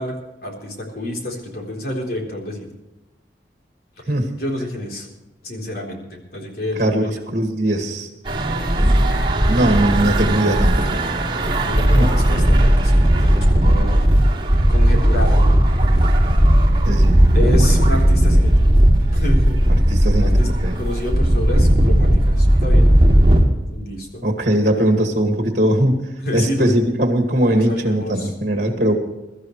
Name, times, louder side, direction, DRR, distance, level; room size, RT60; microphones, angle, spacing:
voice 1, 0.0-2.7 4.0-5.1 5.4-7.2 8.8-8.9 11.4-14.0 14.7-15.5 15.8-16.1 17.3-18.8 19.1-19.8 20.2-20.5 20.7-23.0 23.7-24.3 26.2-26.7 27.5-28.3, left 1 dB, 55° left, 0 dB, 3.8 m, -29 dB
voice 2, 7.3-8.1 9.5-11.0 11.9-12.1 16.8-17.2 19.7-20.3 20.6-20.8 24.2-26.0 26.3-28.9, right 1 dB, 45° right, 4 dB, 2.2 m, -19 dB
sound 1, 8.3-23.4, right 1 dB, 30° right, 2.7 m, -15 dB
23.0 x 13.0 x 3.3 m, 1.0 s
head